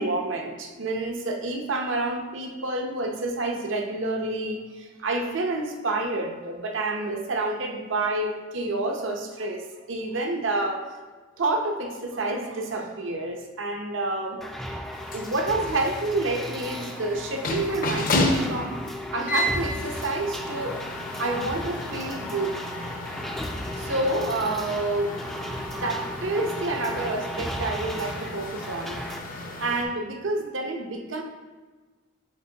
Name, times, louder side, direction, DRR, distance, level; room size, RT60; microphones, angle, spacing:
voice 1, 0.0-10.8 11.4-14.8 15.1-18.8 19.1-20.8 21.2-22.6 23.8-25.2 25.7-29.0 29.6-31.2, right 2 dB, 65° right, 3 dB, 0.8 m, -29 dB
sound 1, 14.4-29.2, equal, ahead, 0.4 m, -35 dB
sound 2, 14.9-29.8, left 1 dB, 45° left, 0.7 m, -33 dB
8.3 x 4.3 x 2.8 m, 1.3 s
head